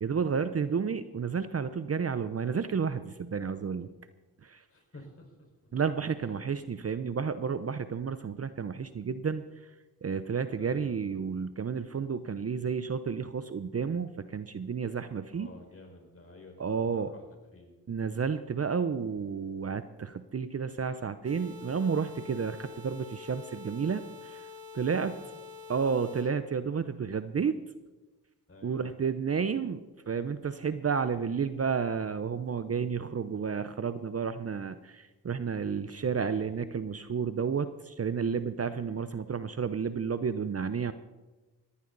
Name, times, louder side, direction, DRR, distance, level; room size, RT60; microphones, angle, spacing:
voice 1, 0.0-3.9 4.4-4.6 5.7-9.4 10.0-15.5 16.6-17.1 17.9-24.5 24.7-25.2 25.7-27.6 28.6-40.9, right 6 dB, 35° right, 12 dB, 0.7 m, -31 dB
voice 2, 4.7-5.1 10.6-11.0 15.3-17.2 17.5-17.7 28.5-28.8 35.9-36.5, left 2 dB, 35° left, 2 dB, 5.0 m, -50 dB
sound 1, 21.2-26.2, left 5 dB, 85° right, 3.5 m, -46 dB
19.0 x 15.0 x 4.0 m, 1.2 s
cardioid pair, 60°, 40 cm